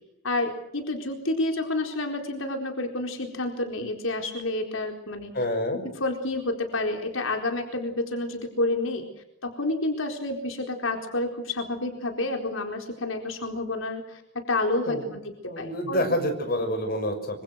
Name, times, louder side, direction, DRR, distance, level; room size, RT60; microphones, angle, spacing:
voice 1, 0.2-5.3 6.0-9.1 9.4-16.0, left 2 dB, 85° left, 3 dB, 4.2 m, -29 dB
voice 2, 5.3-5.9 14.9-15.1 15.4-17.4, left 1 dB, 50° left, 6 dB, 6.3 m, -28 dB
26.0 x 26.0 x 6.4 m, 0.79 s
head